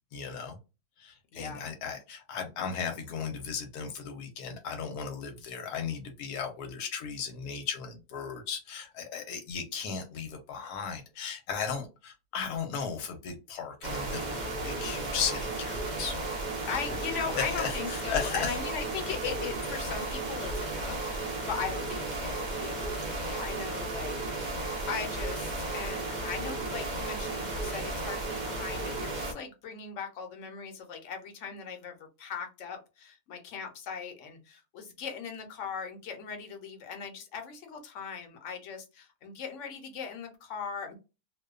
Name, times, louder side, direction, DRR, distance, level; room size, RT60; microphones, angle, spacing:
voice 1, 0.1-0.6 1.0-16.2 17.3-18.6 23.0-23.2, left 6 dB, 85° left, 1.1 m, -36 dB
voice 2, 1.3-1.7 16.6-41.0, left 6 dB, 60° left, 0.9 m, -39 dB
sound 1, 13.8-29.3, right 2 dB, 60° right, 0.4 m, -34 dB
2.6 x 2.2 x 2.3 m
omnidirectional pair, 1.6 m